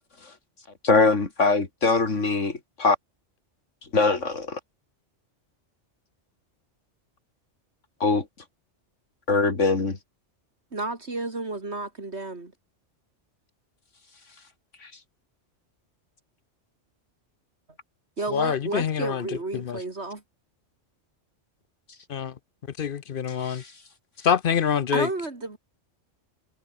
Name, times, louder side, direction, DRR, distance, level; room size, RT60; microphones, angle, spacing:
voice 1, 0.8-3.0 3.9-4.6 8.0-8.2 9.3-10.0 23.4-23.6, left 3 dB, 80° left, 3.3 m, -22 dB
voice 2, 10.7-12.5 18.2-20.2 24.9-25.6, right 2 dB, 60° right, 3.3 m, -31 dB
voice 3, 18.3-19.2 19.7-19.8 22.1-22.3 22.8-23.6 24.2-25.1, left 8 dB, 55° left, 0.8 m, -25 dB
omnidirectional pair, 1.2 m